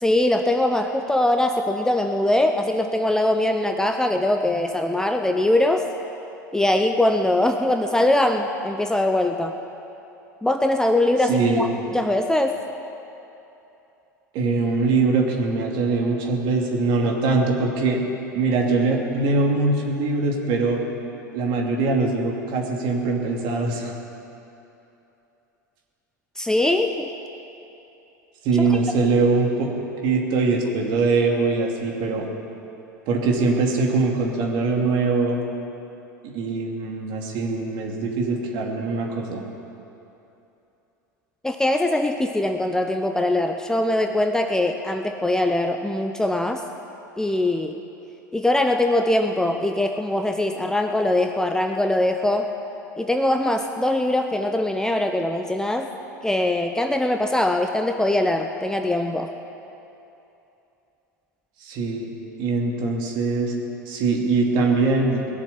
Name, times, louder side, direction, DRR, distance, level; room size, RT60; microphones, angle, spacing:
voice 1, 0.0-5.9 6.5-9.5 10.4-12.6 26.4-27.1 41.4-46.6 47.2-47.8 48.3-52.5 53.0-55.9 56.2-59.3, left 1 dB, 5° left, 5 dB, 0.7 m, -22 dB
voice 2, 11.2-11.7 14.3-18.0 18.3-20.8 21.3-23.9 28.4-29.7 30.0-32.2 33.1-35.4 36.2-39.4 61.6-62.1 62.4-63.5 63.9-65.3, right 3 dB, 50° right, 0 dB, 2.6 m, -22 dB
20.0 x 7.3 x 8.4 m, 2.9 s
figure-of-eight pair, 85°, 10 cm